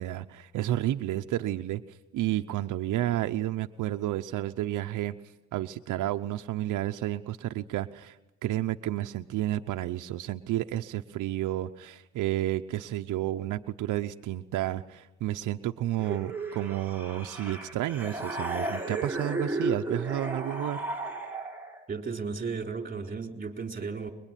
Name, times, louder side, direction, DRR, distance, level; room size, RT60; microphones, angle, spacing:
voice 1, 0.0-1.8 2.1-5.1 5.5-8.2 8.4-20.8, right 14 dB, 80° right, 7 dB, 0.9 m, -31 dB
sound 1, 16.0-21.8, right 2 dB, 5° right, 5.2 m, -34 dB
voice 2, 21.9-24.1, right 5 dB, 30° right, 4 dB, 4.1 m, -34 dB
25.5 x 22.5 x 9.2 m, 0.98 s
cardioid pair, 90°, 30 cm